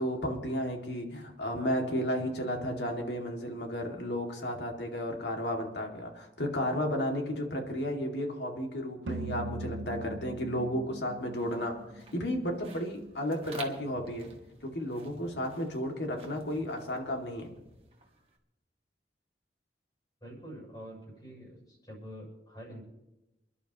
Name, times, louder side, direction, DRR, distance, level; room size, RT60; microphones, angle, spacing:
voice 1, 0.0-14.3 14.6-17.5, equal, 75° left, 2 dB, 2.3 m, -33 dB
sound 1, 9.1-12.3, right 2 dB, 85° right, 0.7 m, -40 dB
sound 2, 11.1-18.4, right 3 dB, 35° right, 1.7 m, -51 dB
voice 2, 20.2-22.8, equal, 25° left, -3 dB, 7.1 m, -46 dB
28.5 x 11.5 x 3.0 m, 0.96 s
head